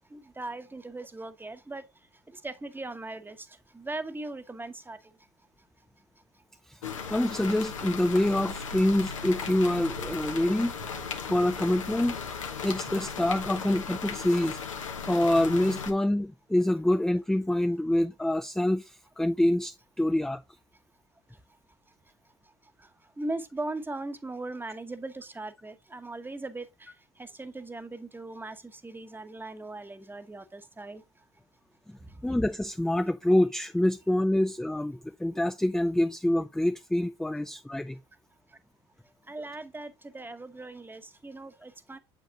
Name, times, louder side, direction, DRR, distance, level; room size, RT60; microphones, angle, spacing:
voice 1, 0.1-1.8 2.3-5.0 22.8-22.9 23.2-31.0 32.0-32.2 39.3-42.0, right 2 dB, 15° right, 1.0 m, -39 dB
sound 1, 6.8-15.9, left 5 dB, 90° left, 1.1 m, -36 dB
voice 2, 7.1-10.7 11.3-12.2 12.6-14.6 15.1-20.4 32.2-38.0, left 1 dB, 5° left, 0.5 m, -26 dB
7.6 x 5.3 x 2.8 m
hypercardioid pair, 65°, 16 cm